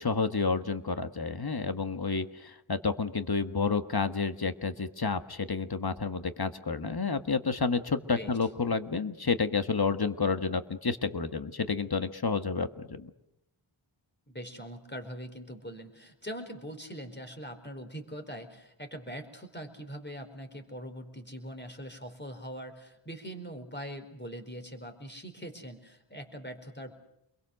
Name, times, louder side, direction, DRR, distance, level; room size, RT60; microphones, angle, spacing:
voice 1, 0.0-13.1, left 4 dB, 50° left, 9 dB, 1.7 m, -30 dB
voice 2, 14.3-26.9, equal, 20° left, 6 dB, 4.6 m, -42 dB
28.5 x 22.5 x 6.5 m, 0.80 s
wide cardioid pair, 45°, 49 cm